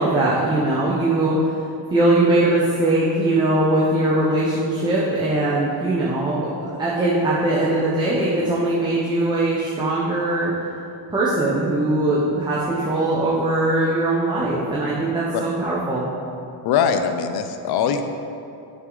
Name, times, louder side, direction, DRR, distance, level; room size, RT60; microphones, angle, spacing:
voice 1, 0.0-10.5 11.1-16.1, right 2 dB, 10° right, -7 dB, 0.7 m, -21 dB
voice 2, 16.6-18.0, left 7 dB, 60° left, 7 dB, 0.7 m, -21 dB
9.2 x 6.2 x 3.9 m, 2.8 s
cardioid pair, 175°, 43 cm